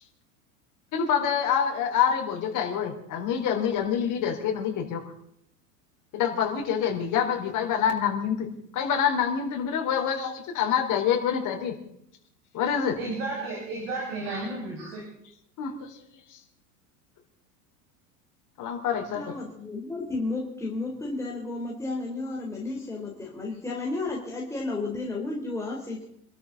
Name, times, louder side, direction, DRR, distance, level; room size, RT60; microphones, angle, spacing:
voice 1, 0.9-5.0 6.1-8.5 8.7-11.7 12.5-12.9 15.6-15.9 18.6-19.3, left 8 dB, 40° left, 2 dB, 4.3 m, -26 dB
voice 2, 13.0-15.0, right 2 dB, 50° right, -3 dB, 6.2 m, -33 dB
voice 3, 19.1-26.0, left 2 dB, 5° left, -3 dB, 3.8 m, -32 dB
26.5 x 13.0 x 4.1 m, 0.70 s
figure-of-eight pair, 85°, 46 cm